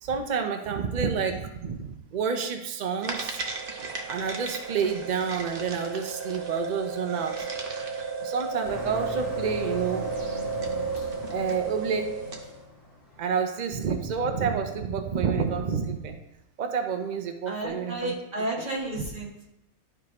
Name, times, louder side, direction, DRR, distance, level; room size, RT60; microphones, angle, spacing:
voice 1, 0.0-3.4 4.1-7.5 8.2-10.1 11.3-12.1 13.2-16.2 16.6-18.2, right 6 dB, 70° right, 5 dB, 0.4 m, -29 dB
sound 1, 3.0-12.5, right 4 dB, 45° right, 0.9 m, -33 dB
Motor vehicle (road), 8.6-13.6, left 2 dB, 60° left, 2.8 m, -40 dB
voice 2, 17.5-19.5, right 2 dB, 30° right, -5 dB, 1.9 m, -32 dB
11.5 x 4.7 x 2.9 m, 0.88 s
omnidirectional pair, 1.5 m